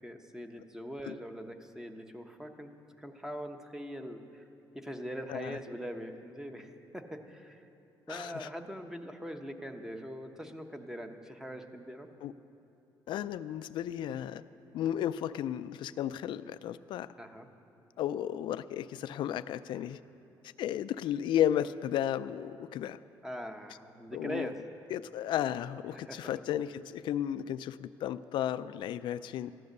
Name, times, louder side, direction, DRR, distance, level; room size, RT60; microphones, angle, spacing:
voice 1, 0.0-2.7 3.0-4.5 4.7-7.6 8.1-12.1 17.2-17.5 23.2-24.5 26.0-26.3, equal, 5° right, 6 dB, 0.9 m, -42 dB
voice 2, 8.1-8.5 12.2-12.3 13.1-14.4 14.7-17.1 18.0-20.0 20.6-23.0 24.1-24.5 24.9-29.5, left 11 dB, 65° left, 13 dB, 0.4 m, -33 dB
14.5 x 10.5 x 6.6 m, 2.7 s
cardioid pair, 120°, 9 cm